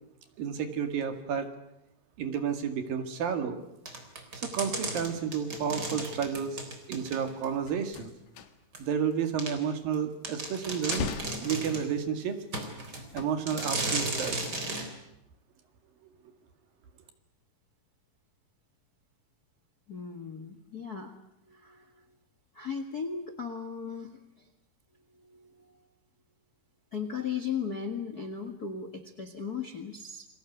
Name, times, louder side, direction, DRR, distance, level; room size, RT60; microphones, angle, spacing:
voice 1, 0.4-1.5 2.2-3.6 4.4-6.6 6.9-8.1 8.8-11.1 11.4-12.4 13.1-14.5, right 7 dB, 70° right, 7 dB, 3.7 m, -31 dB
sound 1, 3.9-7.5 7.9-8.0 8.7-8.8 9.4-9.5 9.9-10.0 10.2-11.9 12.5-13.0 13.5-14.9, right 2 dB, 25° right, 4.1 m, -34 dB
sound 2, 7.7-8.9 9.2-10.3 10.8-12.2 12.9-14.2 14.4-14.9 15.2-15.4, left 6 dB, 70° left, 3.4 m, -40 dB
voice 2, 19.9-21.2 21.5-22.2 22.5-24.5 25.1-25.9 26.9-30.3, left 6 dB, 40° left, 8 dB, 1.4 m, -37 dB
29.0 x 22.0 x 8.2 m, 0.84 s
omnidirectional pair, 4.4 m